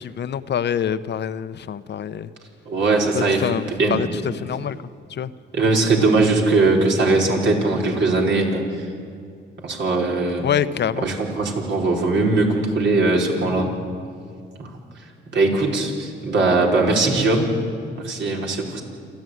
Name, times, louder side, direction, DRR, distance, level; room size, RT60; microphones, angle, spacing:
voice 1, 0.0-2.3 3.1-4.8 5.1-5.3 10.4-11.1, left 8 dB, 60° left, 14 dB, 0.9 m, -25 dB
voice 2, 2.7-3.4 3.8-4.0 5.5-8.6 9.6-10.4 11.0-13.7 14.6-14.7 15.3-17.5 18.0-18.8, right 3 dB, 65° right, 0 dB, 4.7 m, -20 dB
27.5 x 13.0 x 9.4 m, 2.3 s
cardioid pair, 75°, 20 cm